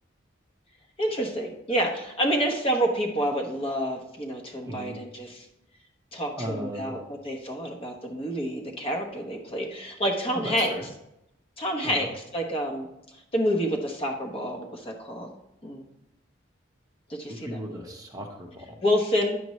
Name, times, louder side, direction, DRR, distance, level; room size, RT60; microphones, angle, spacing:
voice 1, 1.0-5.5 6.1-7.0 7.2-10.7 11.6-12.9 13.1-15.3 15.6-15.8 17.1-17.8 18.8-19.4, equal, 30° left, 1 dB, 1.0 m, -28 dB
voice 2, 6.4-7.0 10.3-10.9 11.8-12.1 17.3-18.8, equal, 20° right, 1 dB, 0.9 m, -36 dB
9.4 x 6.8 x 3.1 m, 0.84 s
head